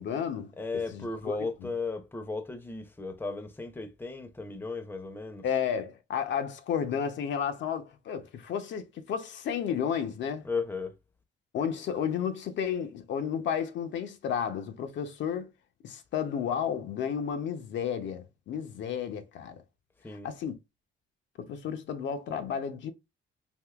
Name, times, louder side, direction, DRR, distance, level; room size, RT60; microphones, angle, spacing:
voice 1, 0.0-0.5 0.9-1.5 5.4-10.5 11.5-15.5 15.8-19.6 20.1-20.6 21.4-22.9, left 8 dB, 65° left, 0.5 m, -32 dB
voice 2, 0.6-5.4 10.4-11.0 20.0-20.3, left 3 dB, 10° left, 0.6 m, -35 dB
3.5 x 2.6 x 2.3 m
cardioid pair, 90°, 20 cm